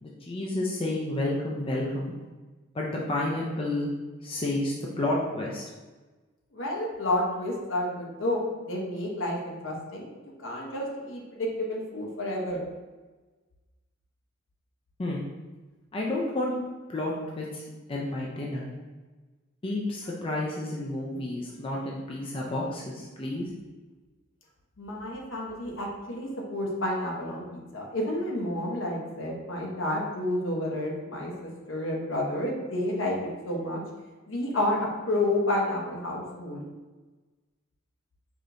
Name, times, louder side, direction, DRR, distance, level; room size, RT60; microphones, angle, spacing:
voice 1, 0.0-2.1 2.7-3.9 4.2-5.6 15.0-15.2 15.9-16.5 16.9-17.6 17.9-18.7 19.6-23.5, left 1 dB, 25° left, -3 dB, 0.4 m, -30 dB
voice 2, 6.5-8.4 8.7-10.1 10.4-12.6 24.8-33.8 34.3-36.6, left 1 dB, 70° left, -1 dB, 0.8 m, -30 dB
4.9 x 2.8 x 2.6 m, 1.3 s
head